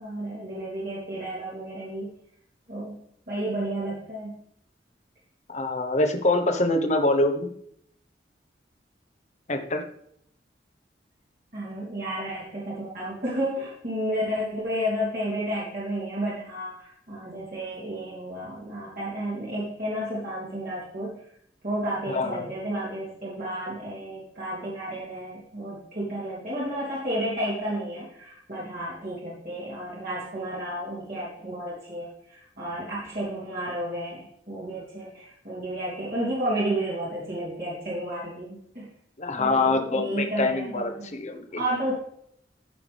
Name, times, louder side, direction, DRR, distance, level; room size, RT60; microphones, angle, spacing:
voice 1, 0.0-2.1 2.7-3.0 3.3-4.4 11.5-21.2 21.6-38.9 39.3-41.1 41.5-41.9, right 1 dB, 50° right, -8 dB, 3.1 m, -32 dB
voice 2, 5.5-7.5 9.5-9.8 22.1-22.5 39.2-41.6, left 2 dB, 40° left, 6 dB, 1.1 m, -25 dB
15.5 x 5.8 x 3.5 m, 0.69 s
head